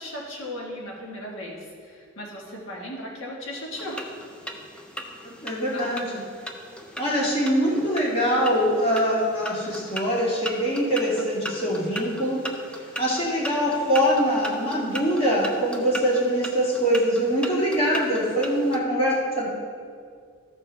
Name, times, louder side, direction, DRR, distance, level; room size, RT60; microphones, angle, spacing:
voice 1, 0.0-4.1 5.7-6.0, left 1 dB, 80° left, -3 dB, 1.6 m, -36 dB
sound 1, 3.7-18.8, equal, 5° left, 0.7 m, -38 dB
voice 2, 5.2-6.0 7.0-12.4 13.0-19.5, equal, 30° left, -6 dB, 2.1 m, -23 dB
14.0 x 6.7 x 3.4 m, 2.1 s
head